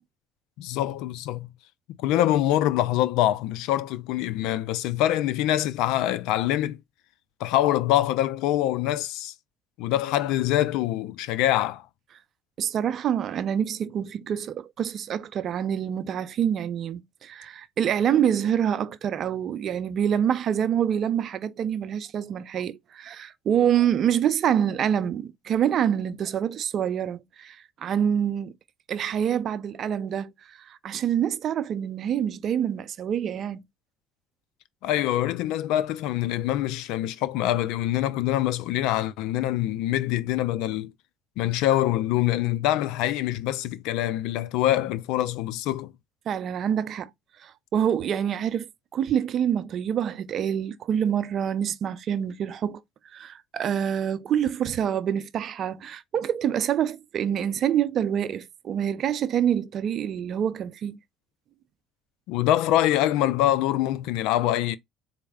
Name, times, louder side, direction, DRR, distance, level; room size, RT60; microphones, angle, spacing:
voice 1, 0.6-1.5 2.0-6.8 7.4-9.3 9.8-11.8 34.8-40.9 41.4-45.9 62.3-64.8, left 13 dB, 80° left, 0.4 m, -24 dB
voice 2, 12.6-28.5 28.9-33.6 46.3-47.1 47.4-52.8 53.1-61.0, right 9 dB, 55° right, 0.5 m, -26 dB
4.2 x 2.0 x 3.5 m
supercardioid pair, 80°, 0 cm